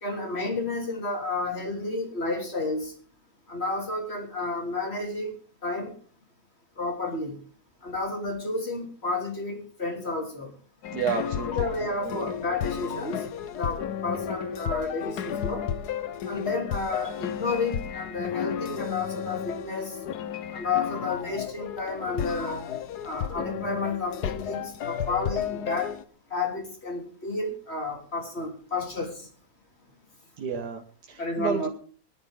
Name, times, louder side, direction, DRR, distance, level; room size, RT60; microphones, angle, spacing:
voice 1, 0.0-2.9 3.5-6.0 6.8-7.4 7.8-10.5 11.1-11.2 11.5-15.6 16.3-19.9 20.5-22.7 23.0-25.9 26.3-29.3 31.2-31.7, left 3 dB, 40° left, 1 dB, 3.7 m, -31 dB
sound 1, 10.8-26.0, left 8 dB, 80° left, 1.4 m, -33 dB
voice 2, 10.9-11.7 12.1-12.3 30.4-31.6, right 6 dB, 85° right, 4 dB, 1.8 m, -31 dB
20.5 x 11.0 x 3.7 m, 0.43 s
omnidirectional pair, 1.7 m